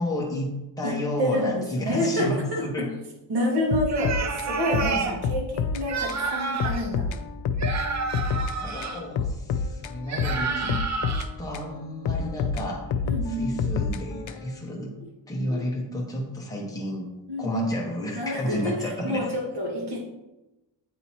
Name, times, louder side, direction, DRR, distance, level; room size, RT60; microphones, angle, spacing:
voice 1, 0.0-2.9 8.5-10.8 11.4-12.9 13.2-14.9 15.3-17.1 17.4-19.3, left 1 dB, 10° left, -2 dB, 0.9 m, -31 dB
voice 2, 0.8-2.9 3.3-7.1 10.5-10.8 13.0-13.7 15.5-15.6 17.3-17.9 18.1-18.7 19.0-20.0, left 1 dB, 60° right, -2 dB, 1.7 m, -28 dB
sound 1, 3.7-5.8 6.1-6.2 6.6-8.6 8.8-11.7 12.1-14.6, left 5 dB, 80° left, 0.6 m, -28 dB
sound 2, 3.9-5.2 5.8-6.9 7.6-9.0 10.1-11.2, right 5 dB, 40° right, 0.6 m, -30 dB
8.2 x 2.9 x 4.3 m, 0.97 s
wide cardioid pair, 180°, 45 cm